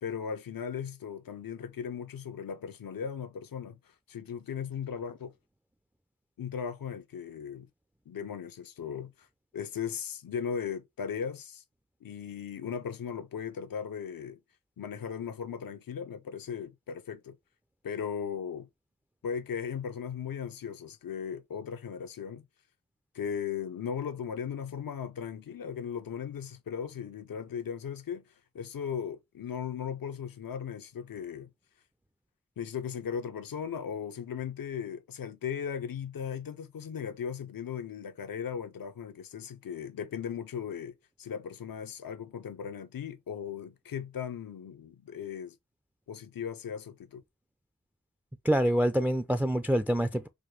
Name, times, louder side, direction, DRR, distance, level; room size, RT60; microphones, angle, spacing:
voice 1, 0.0-3.8 4.1-5.3 6.4-7.7 8.1-9.3 9.5-11.6 12.0-14.4 14.8-17.4 17.8-18.7 19.2-22.4 23.1-28.2 28.5-31.5 32.6-45.5 46.1-47.2, left 7 dB, 80° left, 0.6 m, -37 dB
voice 2, 48.4-50.3, equal, 5° right, 0.3 m, -26 dB
4.9 x 2.2 x 3.1 m
wide cardioid pair, 75°, 34 cm